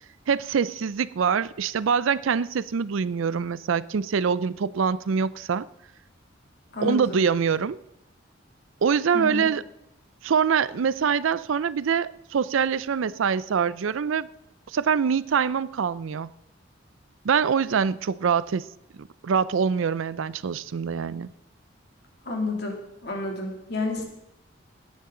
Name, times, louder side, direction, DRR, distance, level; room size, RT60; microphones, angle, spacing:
voice 1, 0.3-5.7 6.8-7.8 8.8-9.6 10.2-14.3 14.7-16.3 17.2-18.7 19.0-21.3, right 6 dB, 75° right, 0.4 m, -24 dB
voice 2, 6.7-7.2 9.1-9.5 22.2-24.0, left 3 dB, 55° left, 2.6 m, -30 dB
17.5 x 9.6 x 3.8 m
head